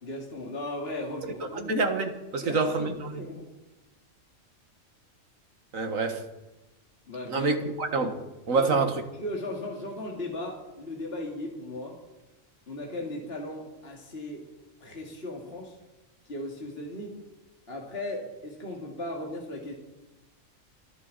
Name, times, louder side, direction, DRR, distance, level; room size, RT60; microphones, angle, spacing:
voice 1, 0.0-1.7 2.4-3.5 7.1-7.5 8.5-8.9 9.2-12.0 12.7-14.5 14.8-15.8 16.3-17.2 17.7-19.7, left 1 dB, 45° left, 2.6 m, -37 dB
voice 2, 1.5-3.2 5.7-6.2 7.3-9.0, right 3 dB, 80° right, 2.0 m, -27 dB
28.0 x 11.0 x 4.2 m
omnidirectional pair, 1.4 m